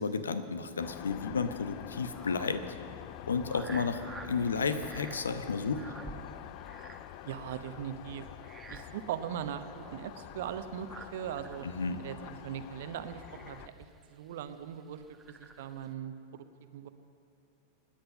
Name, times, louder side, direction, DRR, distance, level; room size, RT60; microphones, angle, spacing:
voice 1, 0.0-2.7 3.3-5.9 11.6-12.0, left 5 dB, 70° left, 11 dB, 1.0 m, -32 dB
sound 1, 0.8-13.7, left 13 dB, 45° left, 0.5 m, -47 dB
sound 2, 1.4-15.9, right 3 dB, 15° right, 1.1 m, -51 dB
voice 2, 7.3-8.3 8.7-11.7 12.0-15.0 15.3-16.4 16.7-16.9, right 9 dB, 55° right, 10 dB, 0.9 m, -40 dB
25.0 x 10.5 x 5.5 m, 2.8 s
figure-of-eight pair, 90°, 0 cm